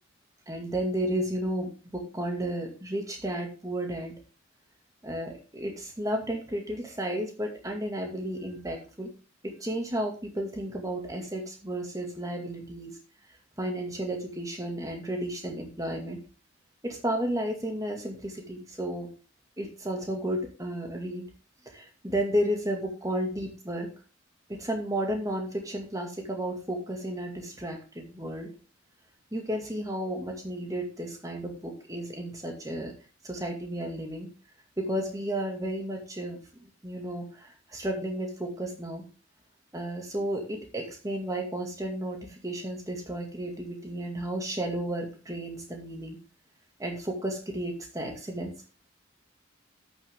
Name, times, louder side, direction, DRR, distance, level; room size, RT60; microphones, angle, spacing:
voice 1, 0.5-4.1 5.0-9.1 9.4-13.0 13.6-16.2 16.8-19.1 19.6-21.2 21.7-23.9 24.5-28.5 29.3-32.9 33.2-34.3 34.8-36.4 36.8-39.0 39.7-46.2 46.8-48.5, right 1 dB, 15° right, 2 dB, 2.2 m, -33 dB
12.0 x 6.9 x 3.7 m, 0.35 s
head